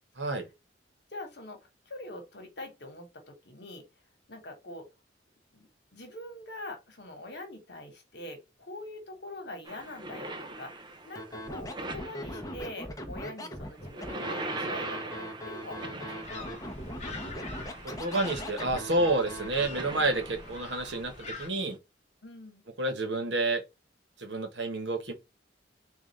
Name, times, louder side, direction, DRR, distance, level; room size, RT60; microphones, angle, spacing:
voice 1, 1.1-3.9 4.3-4.9 5.5-16.5 22.2-22.6, left 1 dB, 65° left, 1.2 m, -44 dB
sound 1, 9.7-12.8 13.7-21.8, right 2 dB, 25° right, 0.4 m, -42 dB
Scratching (performance technique), 11.1-19.6, equal, 20° left, 0.7 m, -40 dB
sound 2, 16.2-21.5, left 3 dB, 40° left, 1.0 m, -45 dB
voice 2, 18.0-21.8 22.8-23.6 24.2-25.1, right 2 dB, 65° right, 1.0 m, -29 dB
4.0 x 2.4 x 3.1 m
head